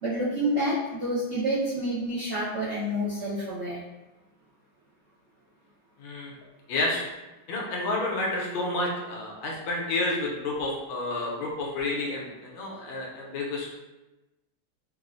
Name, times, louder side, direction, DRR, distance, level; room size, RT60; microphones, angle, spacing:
voice 1, 0.0-3.8, equal, 60° right, -13 dB, 0.7 m, -28 dB
voice 2, 6.0-6.3 6.7-7.0 7.5-13.8, left 2 dB, 80° left, -2 dB, 1.4 m, -30 dB
3.7 x 2.0 x 2.4 m, 1.0 s
omnidirectional pair, 2.3 m